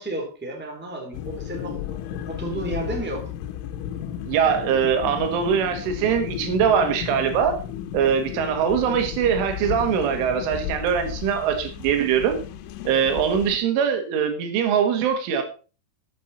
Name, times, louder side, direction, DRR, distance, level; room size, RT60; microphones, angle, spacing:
voice 1, 0.0-3.3, right 1 dB, 5° right, 2.2 m, -32 dB
sound 1, 1.1-13.6, left 10 dB, 90° left, 3.3 m, -34 dB
voice 2, 4.3-7.6 7.9-12.4 12.9-15.4, right 7 dB, 85° right, 4.2 m, -22 dB
12.5 x 8.4 x 4.1 m
omnidirectional pair, 5.5 m